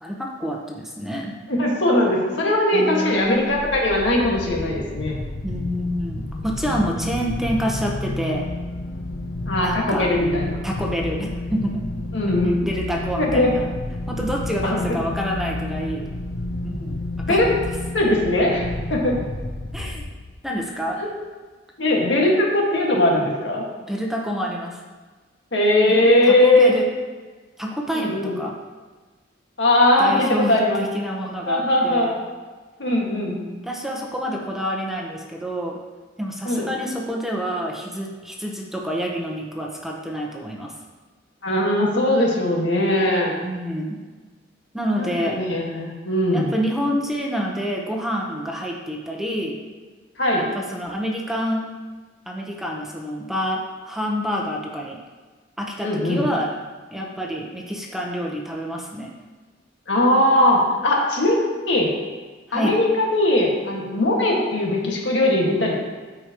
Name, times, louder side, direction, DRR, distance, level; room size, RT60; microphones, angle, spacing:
voice 1, 0.0-1.3 2.7-3.6 5.4-8.5 9.6-10.1 10.6-11.8 12.7-13.7 14.1-16.1 16.6-17.6 19.7-20.0 20.4-21.0 23.8-24.8 25.9-26.9 27.6-28.6 30.0-32.2 33.1-35.8 36.2-40.7 43.4-44.0 44.7-45.4 46.3-49.6 50.4-51.7 52.3-55.0 55.6-56.5 56.9-59.1 62.5-62.8, equal, ahead, -1 dB, 0.9 m, -28 dB
voice 2, 1.5-5.2 9.5-10.6 12.1-12.6 13.2-13.6 14.6-14.8 17.3-17.5 17.9-19.2 21.0-21.1 21.8-23.6 25.5-26.8 27.9-28.4 29.6-30.8 31.5-32.1 32.8-33.4 36.5-36.7 41.4-43.3 45.0-46.5 50.2-50.5 55.8-56.2 59.9-61.4 61.7-61.9 62.5-65.7, left 1 dB, 85° left, -2 dB, 1.8 m, -20 dB
sound 1, 3.2-20.5, left 1 dB, 65° left, 0.7 m, -30 dB
13.5 x 4.9 x 3.0 m, 1.4 s
head